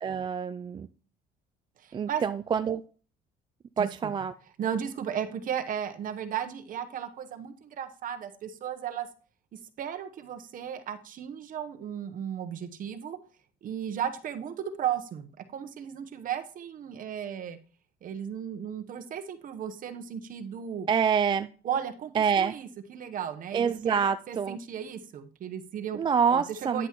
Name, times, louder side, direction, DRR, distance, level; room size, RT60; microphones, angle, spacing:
voice 1, 0.0-0.9 1.9-2.8 3.8-4.3 20.9-21.5 22.1-22.5 23.5-24.6 25.9-26.9, right 6 dB, 30° right, 0.3 m, -26 dB
voice 2, 1.8-2.2 3.8-4.1 4.6-9.1 9.5-13.2 13.6-17.6 18.0-20.9 21.6-26.0 26.3-26.9, right 9 dB, 55° right, 1.1 m, -35 dB
9.8 x 8.1 x 3.1 m
cardioid pair, 110°, 17 cm